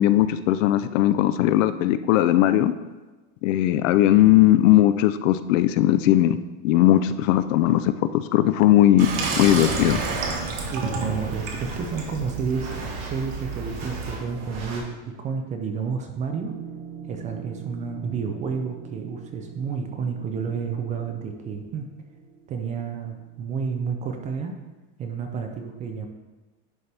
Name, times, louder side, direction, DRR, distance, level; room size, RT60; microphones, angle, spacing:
voice 1, 0.0-2.7 3.4-6.4 6.6-9.1 9.4-10.0, left 13 dB, 75° left, 12 dB, 0.6 m, -18 dB
Water tap faucet / Sink (filling or washing), 9.0-14.2, right 4 dB, 90° right, 1.5 m, -31 dB
sound 1, 9.2-14.8, right 1 dB, 70° right, 2.4 m, -36 dB
voice 2, 10.7-12.8 13.1-16.5 17.1-21.9 22.5-24.5 25.0-26.1, right 6 dB, 20° right, 5 dB, 0.4 m, -30 dB
sound 2, 16.3-24.8, right 7 dB, 40° right, 0.9 m, -44 dB
11.0 x 4.3 x 3.4 m, 1.2 s
supercardioid pair, 155°, 39 cm